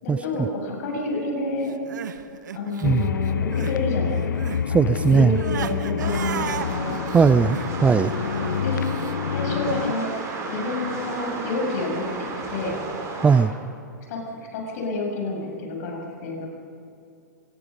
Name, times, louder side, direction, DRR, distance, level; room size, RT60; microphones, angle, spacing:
voice 1, 0.0-1.8 2.5-4.4 4.7-7.0 7.4-7.5 8.6-8.9 9.3-10.1 10.5-12.8 14.1-14.2 14.5-16.5, left 2 dB, 55° left, 0 dB, 6.9 m, -29 dB
Crying sobbing, 1.7-3.8 4.1-9.1, right 8 dB, 75° right, 1.2 m, -36 dB
sound 1, 2.8-9.9, left 7 dB, 80° left, 0.5 m, -27 dB
voice 2, 2.8-3.1 4.7-5.4 7.1-8.1 13.2-13.5, right 5 dB, 10° right, 14 dB, 0.4 m, -18 dB
sound 2, 6.0-13.4, right 3 dB, 30° right, 5.4 m, -33 dB
25.0 x 20.5 x 5.3 m, 2.6 s
hypercardioid pair, 115°, 10 cm